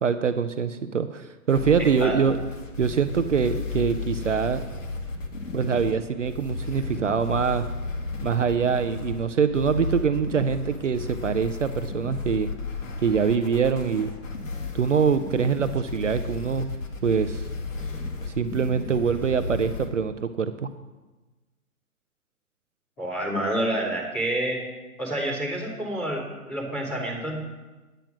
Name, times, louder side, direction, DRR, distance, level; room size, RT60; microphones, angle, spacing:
voice 1, 0.0-2.4 2.8-4.6 5.5-7.7 8.2-12.5 13.0-14.1 14.7-16.7 17.0-17.4 18.3-20.7, right 6 dB, 55° right, 9 dB, 0.6 m, -24 dB
sound 1, 1.5-19.9, left 3 dB, 55° left, 1.9 m, -34 dB
voice 2, 23.0-24.6 25.0-27.4, right 1 dB, 5° left, -10 dB, 1.0 m, -28 dB
9.1 x 8.9 x 6.0 m, 1.2 s
hypercardioid pair, 175°, 45 cm